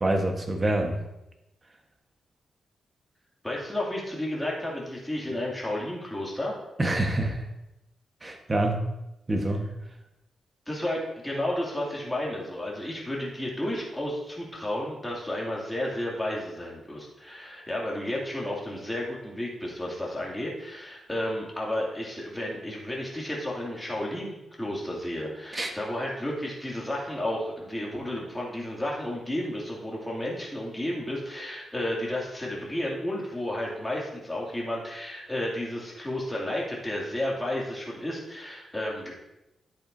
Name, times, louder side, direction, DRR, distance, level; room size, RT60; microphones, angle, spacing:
voice 1, 0.0-0.9 6.8-7.4 8.2-8.9 9.3-9.7 25.5-25.7, right 1 dB, 25° right, 3 dB, 1.3 m, -26 dB
voice 2, 3.4-6.6 10.7-39.1, left 1 dB, 10° left, -4 dB, 2.5 m, -32 dB
10.5 x 8.6 x 2.7 m, 0.92 s
cardioid pair, 100°, 0 cm